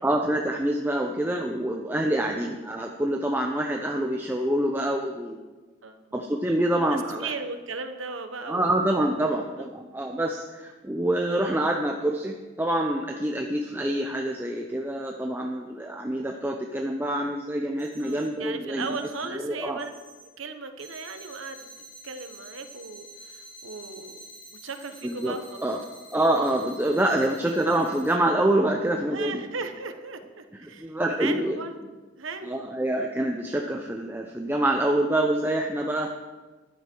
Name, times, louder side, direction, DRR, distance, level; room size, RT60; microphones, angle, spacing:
voice 1, 0.0-5.4 6.1-7.3 8.5-18.9 19.3-19.8 25.0-25.3 25.6-25.8 26.1-29.4 30.6-31.6 32.5-36.1, right 1 dB, 10° right, 2 dB, 0.7 m, -26 dB
voice 2, 6.7-8.7 9.6-9.7 18.0-19.9 20.4-21.7 22.0-24.2 24.6-25.8 27.1-27.2 29.1-30.9 31.2-31.8 32.2-32.6, right 4 dB, 85° right, 8 dB, 1.2 m, -37 dB
sound 1, 17.8-18.2 18.8-19.2 19.8-20.2 20.8-28.1, equal, 55° left, 4.6 m, -48 dB
13.0 x 11.5 x 4.6 m, 1.3 s
head